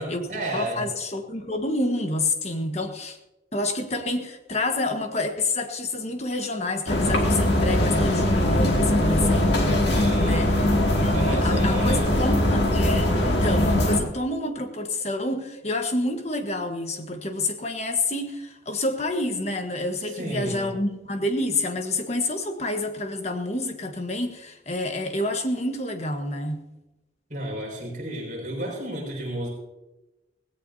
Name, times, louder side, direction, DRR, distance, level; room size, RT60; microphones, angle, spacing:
voice 1, 0.0-0.9 9.9-10.5 10.9-12.1 20.2-20.7 27.3-29.5, right 1 dB, 45° right, -2 dB, 6.1 m, -32 dB
voice 2, 0.5-3.2 3.5-9.9 10.2-26.6, left 2 dB, 35° left, 5 dB, 1.4 m, -28 dB
sound 1, 6.9-14.0, left 1 dB, 75° left, 2.4 m, -21 dB
18.0 x 17.0 x 2.8 m, 1.0 s
head